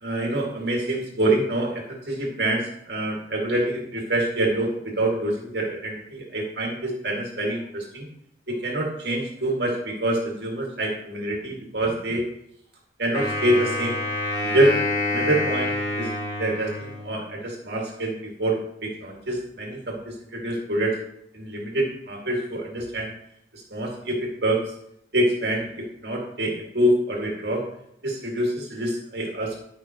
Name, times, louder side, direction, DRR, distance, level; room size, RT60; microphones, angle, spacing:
voice 1, 0.0-8.1 8.5-12.2 13.0-14.0 14.4-14.8 15.1-16.1 16.4-20.0 20.3-21.0 21.3-23.1 23.5-24.6 25.1-27.7 28.0-29.6, right 1 dB, 65° right, -1 dB, 2.2 m, -26 dB
Wind instrument woodwind instrument, 13.1-17.4, left 2 dB, 45° left, 3.6 m, -27 dB
12.0 x 5.6 x 3.0 m, 0.74 s
head